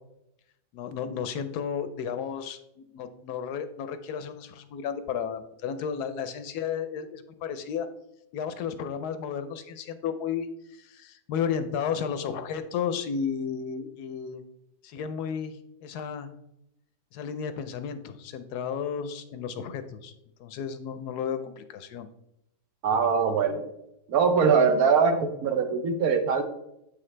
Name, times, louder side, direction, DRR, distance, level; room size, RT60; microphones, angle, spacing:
voice 1, 0.7-7.9 8.3-14.4 14.8-16.3 17.1-20.1 20.4-22.1, left 7 dB, 75° left, 10 dB, 1.1 m, -33 dB
voice 2, 22.8-23.6 24.1-26.4, right 5 dB, 65° right, 7 dB, 1.2 m, -22 dB
7.9 x 5.8 x 3.2 m, 0.82 s
omnidirectional pair, 1.8 m